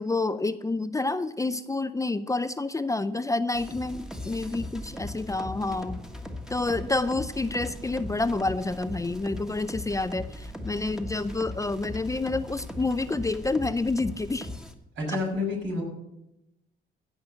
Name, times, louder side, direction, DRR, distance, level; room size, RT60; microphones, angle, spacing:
voice 1, 0.0-6.0 6.5-14.5 15.1-15.2, left 3 dB, 15° left, 13 dB, 0.5 m, -28 dB
sound 1, 3.5-14.7, left 1 dB, 5° right, 1.5 m, -39 dB
voice 2, 15.0-15.8, left 3 dB, 75° right, -2 dB, 6.2 m, -29 dB
15.5 x 5.9 x 7.7 m, 0.89 s
cardioid pair, 90°, 20 cm